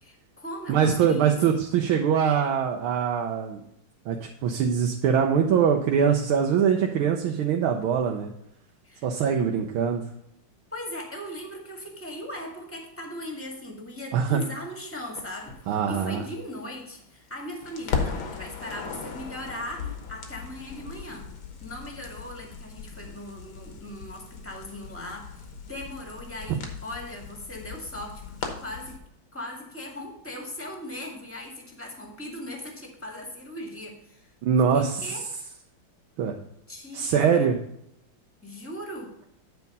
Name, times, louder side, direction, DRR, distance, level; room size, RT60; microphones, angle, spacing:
voice 1, 0.0-1.4 8.8-9.1 10.7-21.3 21.6-25.3 25.6-29.0 29.3-34.3 34.7-35.2 36.7-37.5 38.4-39.1, left 1 dB, 5° left, 1 dB, 1.6 m, -39 dB
voice 2, 0.7-3.6 4.1-8.3 9.0-10.0 14.1-14.4 15.7-16.2 26.5-26.6 34.4-35.1 36.2-36.3 36.9-37.6, right 7 dB, 85° right, 2 dB, 1.6 m, -23 dB
Crackle, 15.2-17.3 17.6-29.0, left 5 dB, 80° left, 2.1 m, -37 dB
9.4 x 4.6 x 5.3 m, 0.78 s
omnidirectional pair, 2.2 m